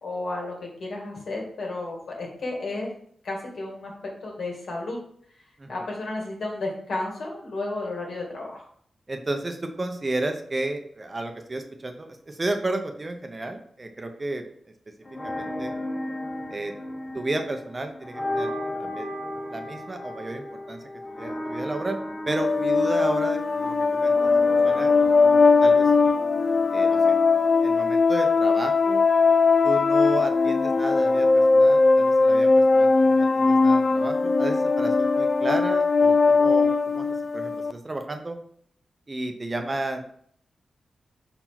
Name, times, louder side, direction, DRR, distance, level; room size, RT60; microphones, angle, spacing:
voice 1, 0.0-2.9 3.2-3.9 4.2-5.0 5.7-8.6, left 2 dB, 70° left, -1 dB, 2.3 m, -32 dB
voice 2, 9.1-14.4 15.2-15.7 16.5-16.7 17.1-18.5 18.8-19.1 19.5-20.8 21.1-22.0 22.3-24.3 24.6-24.9 25.2-25.9 26.7-27.1 27.6-29.1 29.6-38.4 39.1-40.0, right 2 dB, 25° right, 6 dB, 0.7 m, -32 dB
sound 1, 15.0-28.0, left 1 dB, 20° left, 1.9 m, -35 dB
sound 2, 22.3-37.7, left 4 dB, 35° left, 0.3 m, -20 dB
5.5 x 4.7 x 5.8 m, 0.63 s
wide cardioid pair, 135°, 0 cm